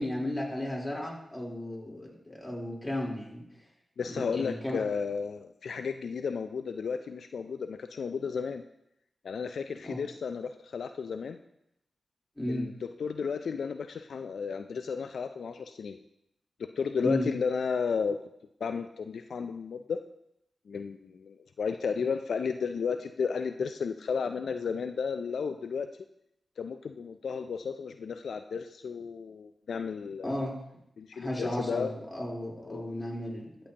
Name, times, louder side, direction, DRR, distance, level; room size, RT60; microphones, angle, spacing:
voice 1, 0.0-3.4 4.1-4.8 9.8-10.0 12.4-12.7 17.0-17.2 30.2-30.6 31.1-33.5, left 1 dB, 20° left, -3 dB, 3.6 m, -34 dB
voice 2, 4.0-8.6 9.2-11.4 12.5-12.7 13.0-16.0 16.8-18.2 18.6-20.0 20.7-25.9 26.6-30.3 31.0-31.9 32.7-33.1, left 5 dB, 80° left, 8 dB, 0.4 m, -33 dB
12.5 x 7.6 x 2.9 m, 0.80 s
cardioid pair, 45°, 0 cm